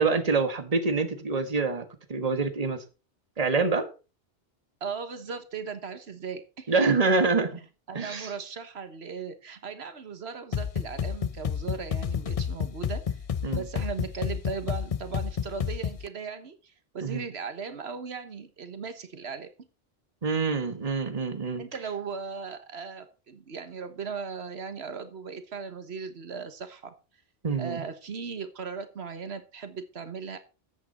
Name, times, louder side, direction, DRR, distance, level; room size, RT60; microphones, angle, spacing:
voice 1, 0.0-2.8 3.4-3.9 6.7-7.6 7.9-8.3 13.4-13.6 17.0-17.2 20.2-21.6 27.4-27.8, right 4 dB, 35° right, 1.5 m, -26 dB
voice 2, 4.8-6.9 7.9-13.2 13.5-19.5 21.6-26.9 27.6-30.4, right 5 dB, 85° right, 1.5 m, -37 dB
sound 1, 10.5-16.1, left 7 dB, 40° left, 0.6 m, -31 dB
13.5 x 8.4 x 4.3 m
omnidirectional pair, 1.1 m